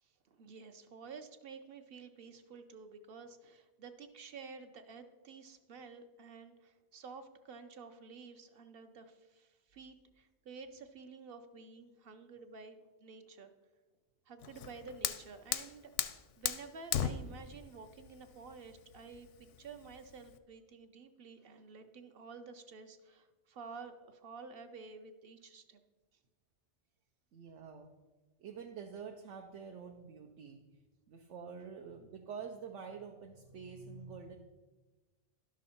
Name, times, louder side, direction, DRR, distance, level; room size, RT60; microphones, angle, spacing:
voice 1, 0.0-13.5 14.3-16.0 16.4-25.8, right 5 dB, 60° right, 8 dB, 0.8 m, -51 dB
Fire, 14.4-20.4, left 9 dB, 85° left, 0.9 m, -38 dB
voice 2, 27.3-27.9 28.4-30.6 31.1-34.4, right 6 dB, 90° right, 2 dB, 1.0 m, -47 dB
11.5 x 6.2 x 4.2 m, 1.2 s
omnidirectional pair, 1.2 m